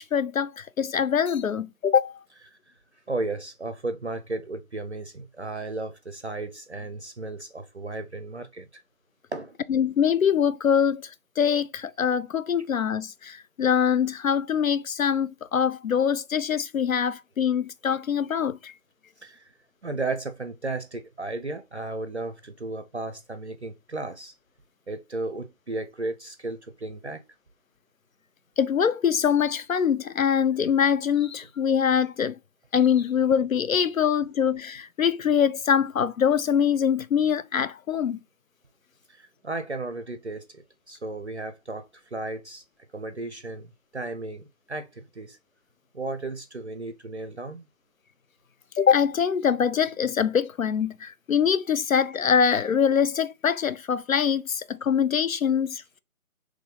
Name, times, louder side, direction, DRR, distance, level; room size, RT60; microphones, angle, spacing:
voice 1, 0.0-2.2 9.7-11.1 11.4-18.7 28.6-32.4 32.7-38.2 48.8-56.0, left 7 dB, 70° left, 0.5 m, -24 dB
voice 2, 3.1-8.8 9.3-9.5 19.2-19.5 19.8-24.3 24.9-27.2 39.1-42.6 42.9-45.4 45.9-47.7, right 2 dB, 50° right, 0.5 m, -34 dB
3.7 x 3.1 x 3.7 m
figure-of-eight pair, 155°, 43 cm